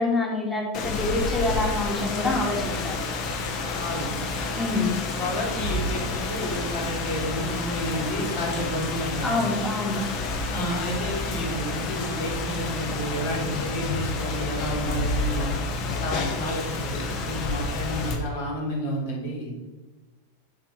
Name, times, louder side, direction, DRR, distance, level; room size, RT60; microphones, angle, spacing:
voice 1, 0.0-3.0 4.5-4.9 9.2-10.0, left 2 dB, 15° left, -1 dB, 2.2 m, -26 dB
Rain, 0.7-18.2, left 3 dB, 40° left, 1.4 m, -29 dB
voice 2, 3.8-4.2 5.2-9.4 10.5-15.5 16.0-19.5, equal, 55° left, -3 dB, 3.4 m, -31 dB
7.6 x 7.6 x 4.5 m, 1.1 s
figure-of-eight pair, 90°, 0 cm